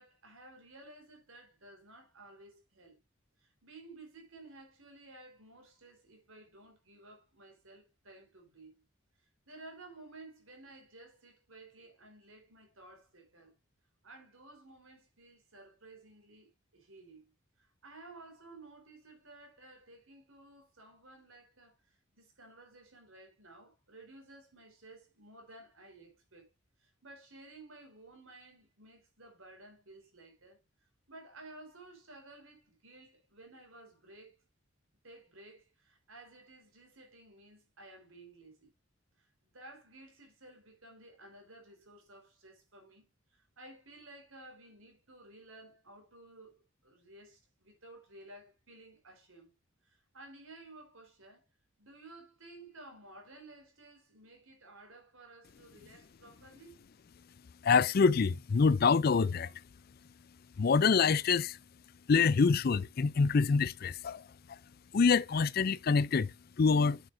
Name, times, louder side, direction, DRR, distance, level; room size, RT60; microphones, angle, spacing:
voice 1, 0.0-3.0 3.4-8.8 9.5-13.6 14.0-17.3 17.6-26.5 26.8-30.6 31.1-34.4 35.0-38.7 39.2-49.5 49.8-51.4 51.8-56.8, right 2 dB, 85° right, 4.2 m, -55 dB
voice 2, 57.6-59.5 60.6-61.6 62.1-64.2 64.9-66.3 66.6-67.0, left 5 dB, 50° left, 0.4 m, -26 dB
9.9 x 6.9 x 2.6 m
head